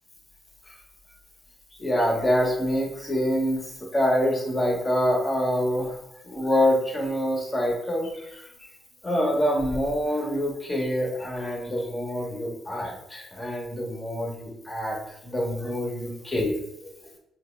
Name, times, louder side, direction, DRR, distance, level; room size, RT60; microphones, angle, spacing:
voice 1, 1.8-6.0 6.2-8.5 9.0-16.9, equal, 25° left, -1 dB, 1.1 m, -26 dB
5.6 x 2.2 x 2.4 m, 0.82 s
cardioid pair, 90°, 0 cm